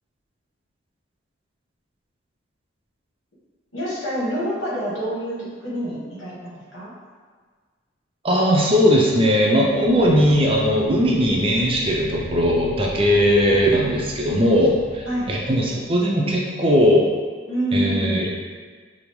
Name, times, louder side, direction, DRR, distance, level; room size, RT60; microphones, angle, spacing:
voice 1, 3.7-6.9 9.9-10.0 13.8-13.9 15.0-15.3 17.5-18.3, right 1 dB, 85° left, -6 dB, 1.3 m, -27 dB
voice 2, 8.2-17.1 17.7-18.4, equal, 30° right, -2 dB, 0.4 m, -19 dB
sound 1, 9.6-16.1, equal, 70° left, 1.2 m, -37 dB
5.1 x 2.0 x 3.0 m, 1.6 s
head